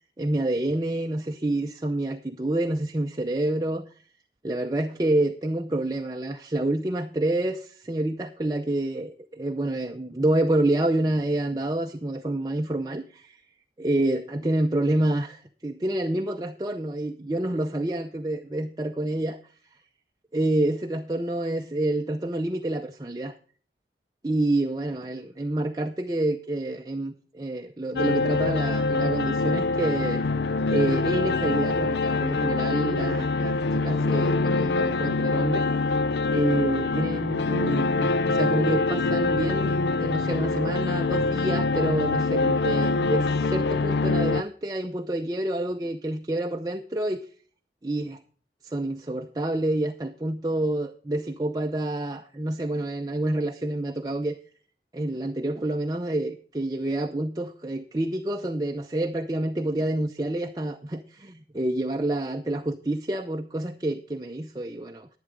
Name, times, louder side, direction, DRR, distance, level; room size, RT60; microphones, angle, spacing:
voice 1, 0.2-4.0 4.4-13.4 13.8-19.5 20.3-23.4 24.2-30.2 30.7-35.9 36.3-47.3 47.8-48.2 48.6-54.3 54.9-65.1, right 1 dB, 20° right, 4 dB, 0.5 m, -28 dB
sound 1, 28.0-44.4, left 3 dB, 65° left, 0.4 m, -24 dB
11.0 x 9.5 x 3.8 m, 0.43 s
head